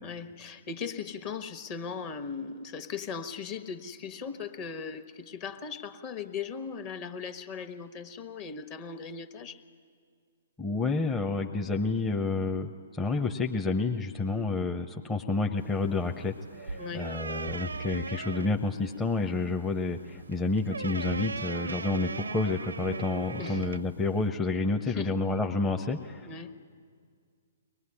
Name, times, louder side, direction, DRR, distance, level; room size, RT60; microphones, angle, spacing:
voice 1, 0.0-9.6 16.8-17.1 23.4-23.7 24.9-25.2 26.3-26.5, left 6 dB, 35° left, 9 dB, 1.4 m, -38 dB
voice 2, 10.6-26.3, left 3 dB, 10° left, 1 dB, 0.8 m, -29 dB
sound 1, 15.6-24.3, right 3 dB, 90° right, 0.5 m, -39 dB
23.5 x 19.5 x 9.9 m, 2.1 s
hypercardioid pair, 130°, 0 cm